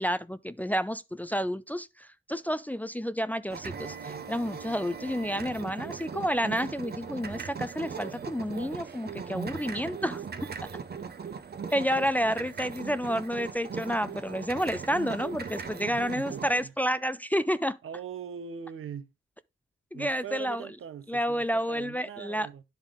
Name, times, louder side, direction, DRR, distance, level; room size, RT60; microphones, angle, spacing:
voice 1, 0.0-10.2 11.7-17.7 19.9-20.7 21.1-22.5, equal, 10° left, 0.4 m, -30 dB
sound 1, 3.5-16.6, right 6 dB, 50° right, 0.7 m, -39 dB
voice 2, 15.9-16.7 17.8-19.1 19.9-22.6, right 7 dB, 80° right, 0.8 m, -41 dB
10.0 x 3.5 x 3.6 m
cardioid pair, 75°, 21 cm